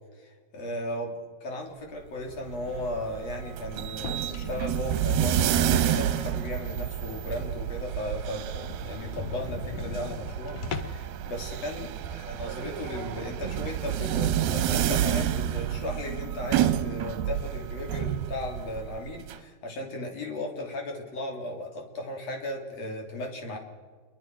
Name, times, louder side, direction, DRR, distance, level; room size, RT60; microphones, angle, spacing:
voice 1, 0.2-23.6, left 1 dB, 45° left, 1 dB, 3.9 m, -36 dB
sound 1, 2.3-19.4, right 10 dB, 85° right, 2.7 m, -29 dB
sound 2, 3.9-6.4 6.9-7.0 7.4-7.5 7.7-7.8 8.1-8.2 8.5-11.2, left 5 dB, 65° left, 1.6 m, -39 dB
28.5 x 23.0 x 4.5 m, 1.6 s
omnidirectional pair, 4.2 m